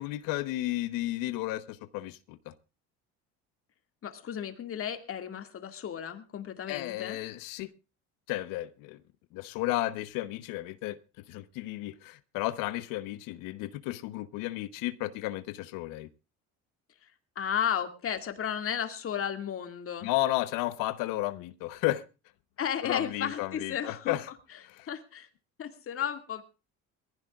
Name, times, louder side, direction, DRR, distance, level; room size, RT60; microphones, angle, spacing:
voice 1, 0.0-2.5 6.7-7.7 8.3-9.0 9.3-11.0 11.3-16.1 20.0-22.0 22.8-24.3 24.6-24.9, left 16 dB, 75° left, 1.0 m, -33 dB
voice 2, 4.0-7.2 17.0-17.1 17.4-20.1 22.6-24.1 24.9-25.3 25.6-26.4, left 8 dB, 40° left, 2.1 m, -33 dB
23.0 x 15.5 x 2.4 m
cardioid pair, 110°, 33 cm